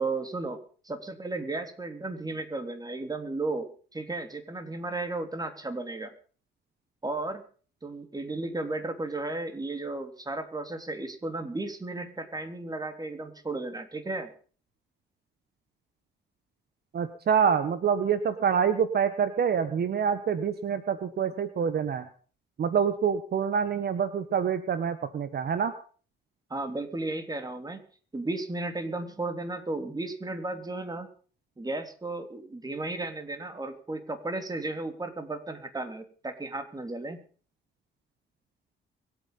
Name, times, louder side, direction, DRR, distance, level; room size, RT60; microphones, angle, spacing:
voice 1, 0.0-6.1 7.0-7.4 7.8-14.3 26.5-27.8 28.1-31.1 31.6-37.2, right 2 dB, 20° right, 8 dB, 3.3 m, -34 dB
voice 2, 16.9-22.1 22.6-25.7, right 7 dB, 55° right, 11 dB, 1.4 m, -26 dB
23.0 x 9.2 x 5.6 m, 0.42 s
cardioid pair, 90°, 20 cm